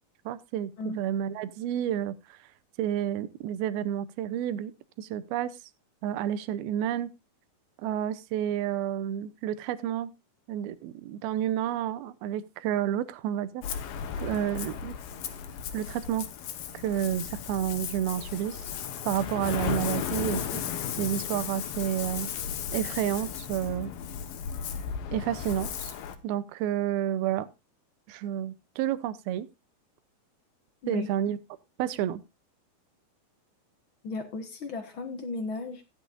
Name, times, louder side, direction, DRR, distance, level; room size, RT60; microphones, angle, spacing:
voice 1, 0.3-2.2 2.8-4.7 5.0-5.6 6.0-7.1 7.8-10.1 10.5-13.6 14.2-14.9 15.7-16.3 16.8-18.6 19.0-22.3 22.7-23.9 25.1-25.9 26.2-27.5 28.1-29.5 30.9-31.4 31.8-32.2, right 11 dB, 90° right, 2.6 m, -30 dB
Ocean, 13.6-26.2, left 8 dB, 75° left, 2.9 m, -35 dB
voice 2, 34.0-35.8, left 3 dB, 55° left, 1.5 m, -35 dB
15.5 x 10.0 x 2.5 m
omnidirectional pair, 4.2 m